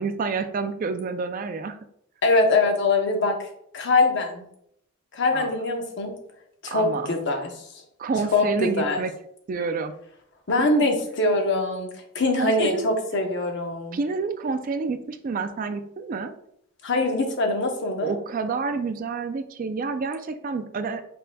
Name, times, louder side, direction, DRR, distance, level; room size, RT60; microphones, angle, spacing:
voice 1, 0.0-1.8 5.3-5.5 6.7-7.1 8.0-9.1 9.5-9.9 10.6-10.9 12.4-12.9 13.9-16.3 18.0-21.1, right 4 dB, 40° right, 9 dB, 0.3 m, -29 dB
voice 2, 2.2-3.3 3.7-4.4 5.1-6.1 6.6-7.5 8.3-9.0 10.5-11.9 12.1-14.0 16.8-18.1, left 2 dB, 55° left, 3 dB, 0.9 m, -23 dB
5.4 x 3.9 x 2.2 m, 0.71 s
head